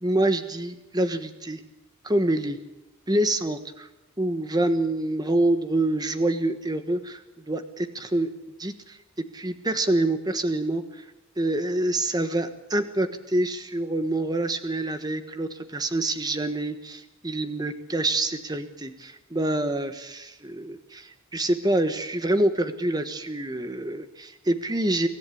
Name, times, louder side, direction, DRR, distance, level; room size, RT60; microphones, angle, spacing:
voice 1, 0.0-1.6 2.0-2.6 3.1-3.9 4.2-7.2 7.5-8.3 8.6-11.0 11.4-25.1, right 1 dB, 20° right, 9 dB, 1.3 m, -26 dB
25.0 x 14.5 x 8.6 m, 0.96 s
head